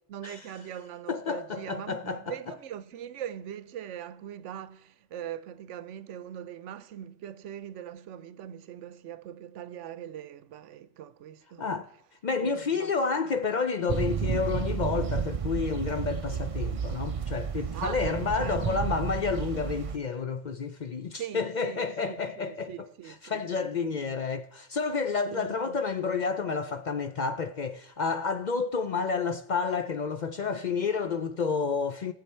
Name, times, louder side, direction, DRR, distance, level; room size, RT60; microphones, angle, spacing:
voice 1, 0.1-11.8 12.3-12.9 17.7-18.6 21.2-24.0 25.3-25.8, right 10 dB, 85° right, 0.9 m, -41 dB
voice 2, 1.1-2.5 11.6-11.9 12.2-22.7 23.2-32.1, left 5 dB, 50° left, 0.6 m, -30 dB
sound 1, 13.9-20.0, right 6 dB, 45° right, 0.4 m, -31 dB
18.5 x 7.3 x 4.3 m
omnidirectional pair, 1.2 m